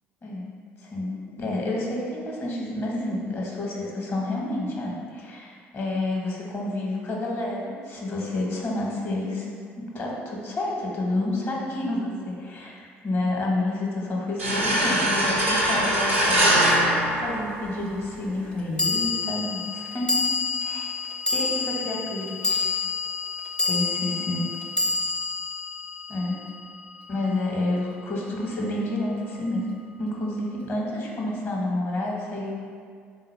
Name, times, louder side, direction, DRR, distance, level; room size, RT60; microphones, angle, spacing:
voice 1, 0.8-1.1 1.4-9.5 9.7-20.3 20.6-20.9 21.3-22.7 23.6-24.5 26.1-26.4 27.1-29.6 30.0-32.5, left 2 dB, 35° left, -2 dB, 0.9 m, -29 dB
sound 1, 14.4-18.0, right 1 dB, 85° right, 0.5 m, -22 dB
sound 2, 16.7-16.8 18.8-27.2, left 4 dB, 15° left, 0.5 m, -28 dB
3.8 x 2.1 x 4.3 m, 2.1 s
figure-of-eight pair, 50°, 7 cm